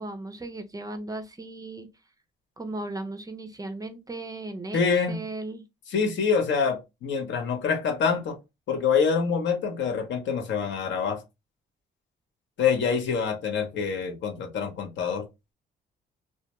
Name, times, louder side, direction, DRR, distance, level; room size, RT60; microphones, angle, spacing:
voice 1, 0.0-1.9 2.6-4.8 5.1-5.6, right 2 dB, 20° right, 0.4 m, -36 dB
voice 2, 4.7-5.2 5.9-8.4 8.7-11.2 12.6-15.3, left 6 dB, 70° left, 0.7 m, -26 dB
2.2 x 2.1 x 2.8 m
cardioid pair, 90°, 20 cm